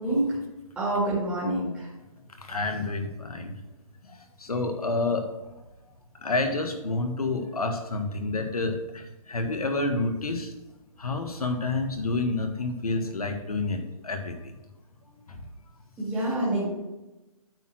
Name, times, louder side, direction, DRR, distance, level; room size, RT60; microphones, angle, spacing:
voice 1, 0.0-0.4 0.8-1.9 16.0-16.7, right 1 dB, 5° right, -8 dB, 1.9 m, -27 dB
voice 2, 2.4-3.6 4.0-5.3 6.2-10.5 11.0-14.5, left 2 dB, 85° left, 6 dB, 1.6 m, -29 dB
8.8 x 4.4 x 6.1 m, 1.0 s
hypercardioid pair, 160°, 19 cm